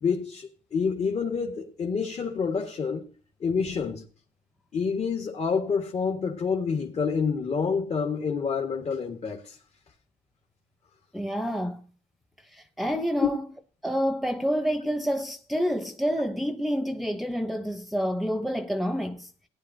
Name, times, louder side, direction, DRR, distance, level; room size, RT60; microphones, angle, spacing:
voice 1, 0.0-3.0 3.4-4.0 4.7-9.6 13.2-13.3, left 5 dB, 45° left, 1.6 m, -28 dB
voice 2, 11.1-11.8 12.5-13.4 13.8-19.3, equal, ahead, 0.8 m, -28 dB
18.0 x 10.0 x 2.7 m
cardioid pair, 95°, 14 cm